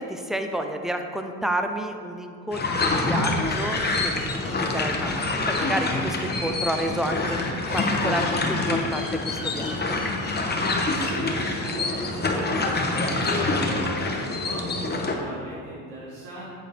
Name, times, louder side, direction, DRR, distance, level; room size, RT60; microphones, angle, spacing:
voice 1, 0.0-7.4 7.7-10.0, equal, ahead, 5 dB, 0.4 m, -30 dB
sound 1, 2.5-15.2, left 2 dB, 25° left, 0.9 m, -26 dB
sound 2, 3.3-10.4, left 3 dB, 55° left, 1.2 m, -37 dB
voice 2, 10.5-16.5, right 1 dB, 80° right, -6 dB, 1.3 m, -38 dB
9.0 x 3.9 x 3.3 m, 2.3 s
supercardioid pair, 70°, 40 cm